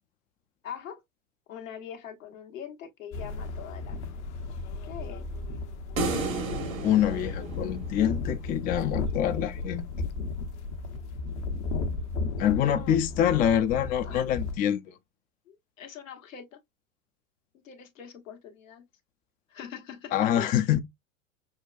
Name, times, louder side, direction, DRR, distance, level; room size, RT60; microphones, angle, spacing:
voice 1, 0.6-1.0 1.5-4.0 4.8-5.3 12.7-13.3 14.0-14.2 15.5-16.6 17.6-18.9 19.5-20.7, left 8 dB, 75° left, 1.3 m, -43 dB
sound 1, 3.1-14.6, left 3 dB, 60° left, 0.9 m, -34 dB
sound 2, 6.0-8.4, right 3 dB, 85° right, 1.5 m, -32 dB
voice 2, 6.8-9.8 12.4-14.9 20.1-20.8, left 10 dB, 20° left, 0.4 m, -25 dB
6.3 x 2.2 x 2.4 m
hypercardioid pair, 100°, 40 cm